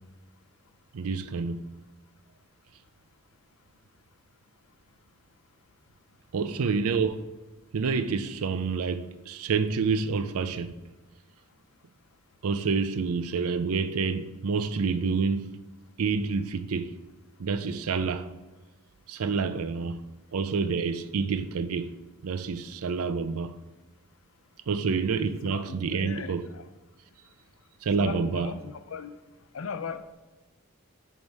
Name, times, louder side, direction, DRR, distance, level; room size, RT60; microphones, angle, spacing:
voice 1, 0.9-1.6 6.3-7.3 7.7-10.8 12.4-15.5 16.0-16.9 17.4-18.3 19.1-20.0 20.3-21.9 22.2-23.5 24.7-26.5 27.8-28.5, right 5 dB, 85° right, 0.5 m, -28 dB
voice 2, 25.4-26.6 28.0-29.2 29.5-30.1, left 5 dB, 70° left, 0.5 m, -38 dB
9.4 x 3.6 x 4.7 m
head